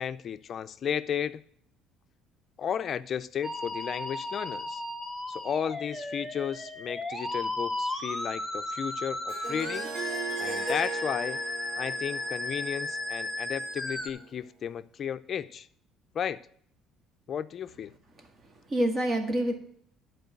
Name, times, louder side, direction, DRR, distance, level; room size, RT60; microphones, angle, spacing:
voice 1, 0.0-1.4 2.6-4.8 5.3-9.9 10.4-11.4 11.8-15.7 16.1-16.4 17.3-17.9, left 8 dB, 45° left, 0.5 m, -34 dB
Musical instrument, 3.4-14.1, left 2 dB, 5° right, 1.3 m, -35 dB
Harp, 9.3-14.2, right 4 dB, 60° right, 2.0 m, -39 dB
voice 2, 18.2-19.6, right 1 dB, 35° right, 1.8 m, -28 dB
11.5 x 4.6 x 7.9 m
cardioid pair, 105°, 0 cm